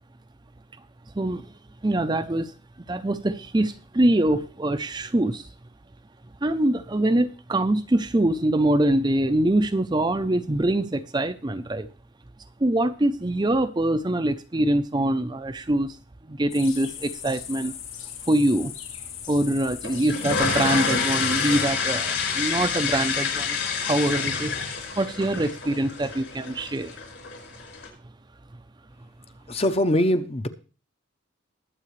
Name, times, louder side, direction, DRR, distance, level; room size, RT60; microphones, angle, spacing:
voice 1, 1.1-1.5 1.8-2.5 2.9-5.5 6.4-11.9 12.6-16.0 16.2-17.7 18.3-18.7 19.3-24.6 25.0-27.0, right 1 dB, 20° right, 9 dB, 0.5 m, -24 dB
sound 1, 16.5-21.6, left 9 dB, 90° left, 2.9 m, -38 dB
sound 2, 19.8-27.9, left 5 dB, 65° left, 4.9 m, -28 dB
voice 2, 29.5-30.5, left 1 dB, 30° left, 10 dB, 0.7 m, -22 dB
21.0 x 7.6 x 3.2 m, 0.36 s
head